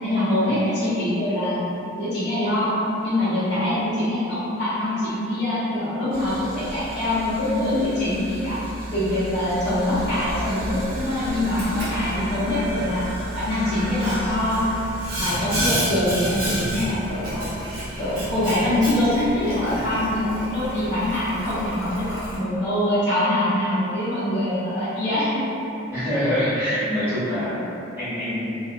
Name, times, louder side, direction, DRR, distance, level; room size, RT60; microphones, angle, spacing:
voice 1, 0.0-1.6 1.9-2.7 3.0-8.6 8.9-13.0 13.3-14.6 15.2-17.5 18.0-25.5, left 1 dB, 55° left, -12 dB, 0.7 m, -24 dB
voice 2, 3.5-3.8 19.7-20.0 25.9-28.6, equal, 10° right, -17 dB, 1.4 m, -26 dB
Boiling, 6.1-22.4, equal, 45° right, 0.6 m, -31 dB
2.7 x 2.2 x 2.3 m, 2.8 s
head